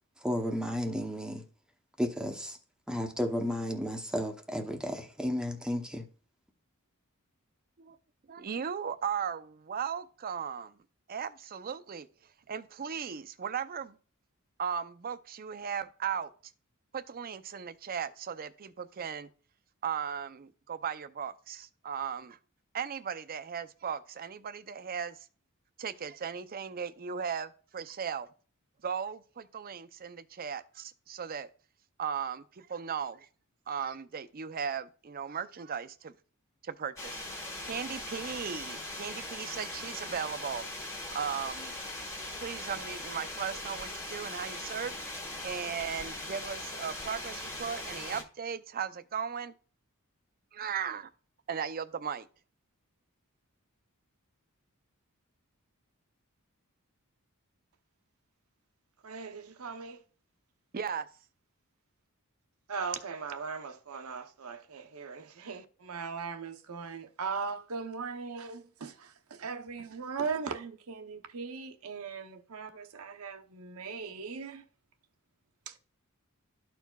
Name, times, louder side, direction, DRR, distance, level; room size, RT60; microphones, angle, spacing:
voice 1, 0.2-1.4 2.0-2.6 2.9-6.1, equal, 5° right, 0.7 m, -33 dB
voice 2, 8.3-10.7 11.1-12.1 12.5-13.9 14.6-16.3 16.9-19.3 19.8-22.4 22.7-25.2 25.8-28.3 28.8-31.5 32.0-33.3 33.7-36.1 36.6-37.2 37.6-40.6 41.1-41.8 42.4-44.9 45.4-49.5 50.5-51.1 51.5-52.3 60.7-61.1, right 7 dB, 40° right, 0.5 m, -37 dB
sound 1, 37.0-48.2, left 1 dB, 15° left, 1.3 m, -40 dB
voice 3, 59.0-60.0 62.7-74.7 75.7-75.8, right 5 dB, 75° right, 0.8 m, -39 dB
13.0 x 4.6 x 2.3 m
head